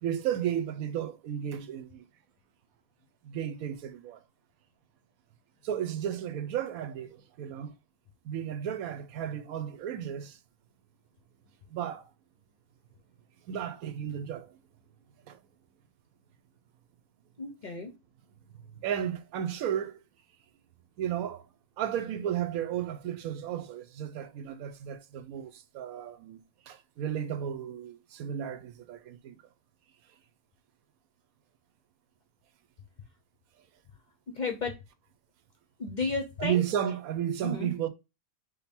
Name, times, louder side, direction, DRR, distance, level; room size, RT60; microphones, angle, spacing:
voice 1, 0.0-2.0 3.2-4.2 5.6-7.7 8.2-10.4 11.7-12.1 13.5-14.6 15.3-15.4 18.8-20.0 21.0-21.5 21.8-26.4 26.7-29.4 36.4-37.9, right 10 dB, 85° right, 1.1 m, -33 dB
voice 2, 17.4-17.9 34.3-34.7 35.8-36.6 37.4-37.7, left 3 dB, 50° left, 0.6 m, -32 dB
5.3 x 2.1 x 4.2 m
omnidirectional pair, 1.4 m